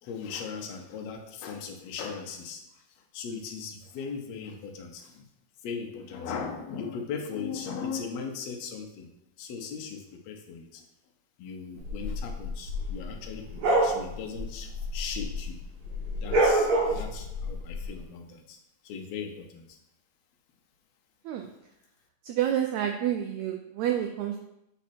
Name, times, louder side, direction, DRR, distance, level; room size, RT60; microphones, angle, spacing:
voice 1, 0.0-2.8 3.1-5.3 5.6-9.1 9.4-10.8 11.4-15.6 16.2-18.6 18.8-19.8, left 6 dB, 70° left, 3 dB, 1.7 m, -38 dB
sound 1, 11.8-15.5 15.8-17.8, right 1 dB, 60° right, 3.1 m, -27 dB
voice 2, 22.2-24.4, right 10 dB, 85° right, 4 dB, 1.6 m, -29 dB
7.2 x 4.1 x 4.3 m, 0.83 s
omnidirectional pair, 3.7 m